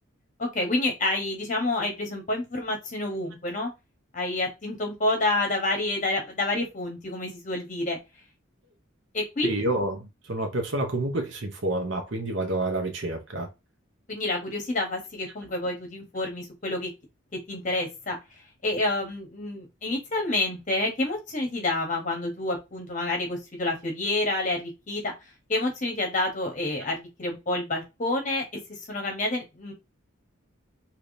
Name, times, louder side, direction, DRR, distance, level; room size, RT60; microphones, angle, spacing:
voice 1, 0.4-3.7 4.1-8.0 9.1-9.5 14.1-16.9 17.5-18.2 18.6-25.0 25.5-28.4 28.7-29.7, left 2 dB, 35° left, 0.9 m, -28 dB
voice 2, 9.4-13.5, right 2 dB, 60° right, 0.8 m, -28 dB
3.4 x 2.9 x 2.6 m
head